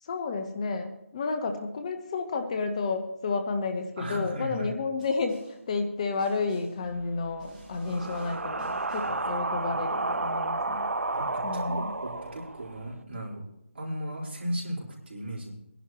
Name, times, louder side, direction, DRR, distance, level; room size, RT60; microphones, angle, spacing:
voice 1, 0.0-10.9 11.4-11.9, left 4 dB, 30° left, 6 dB, 1.0 m, -31 dB
voice 2, 4.0-4.8 11.1-13.4 13.7-15.5, equal, 55° right, -2 dB, 4.6 m, -36 dB
Snare drum, 5.0-5.7 6.2-6.9 7.4-9.3, right 2 dB, 35° right, 5.0 m, -52 dB
sound 1, 6.8-13.0, right 2 dB, 85° right, 0.8 m, -32 dB
20.5 x 11.0 x 3.0 m, 0.83 s
figure-of-eight pair, 160°, 7 cm